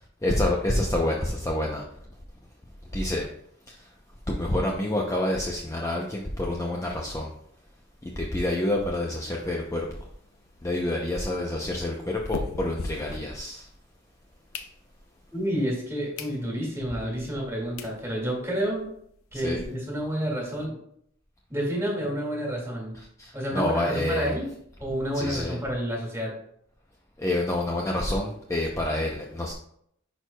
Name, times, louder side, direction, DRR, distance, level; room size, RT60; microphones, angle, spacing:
voice 1, 0.2-1.8 2.9-3.3 3.7-3.9 4.3-7.3 8.0-9.9 10.6-13.7 19.3-19.6 23.0-24.3 25.1-25.6 27.2-29.5, left 1 dB, 15° left, -1 dB, 0.6 m, -28 dB
sound 1, 9.9-13.9 14.3-15.2 15.7-15.8 16.1-16.4 16.8-16.9 17.5-17.6 17.8-18.0 18.4-18.5 18.7-18.8 19.1-19.2 19.5-20.6, left 3 dB, 90° left, 0.6 m, -39 dB
voice 2, 15.3-18.9 19.3-20.8 21.5-23.0 23.3-24.5 24.8-26.3, equal, 15° right, -2 dB, 2.1 m, -29 dB
10.5 x 4.6 x 2.2 m, 0.70 s
head